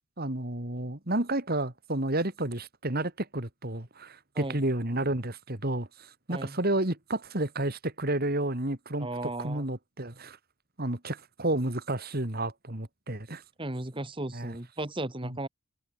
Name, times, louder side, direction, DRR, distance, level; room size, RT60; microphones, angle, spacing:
voice 1, 0.2-9.1 9.4-10.4 10.8-13.4 14.3-14.5 15.2-15.4, right 1 dB, 45° right, 2.8 m, -31 dB
voice 2, 9.0-9.7 13.6-15.5, right 2 dB, 25° right, 1.6 m, -35 dB
head